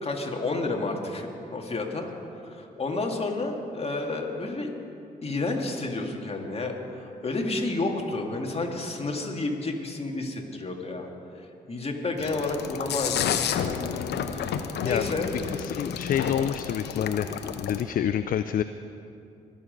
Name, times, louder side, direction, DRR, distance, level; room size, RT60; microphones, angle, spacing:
voice 1, 0.0-2.1 2.3-4.7 5.2-11.1 11.4-13.3 13.6-14.0 14.3-15.3, left 2 dB, 35° left, 1 dB, 2.3 m, -31 dB
sound 1, 12.2-17.8, left 8 dB, 70° left, 0.8 m, -31 dB
voice 2, 15.6-17.3 17.6-18.6, left 9 dB, 50° left, 11 dB, 0.4 m, -27 dB
22.0 x 7.5 x 5.3 m, 2.8 s
supercardioid pair, 50°, 18 cm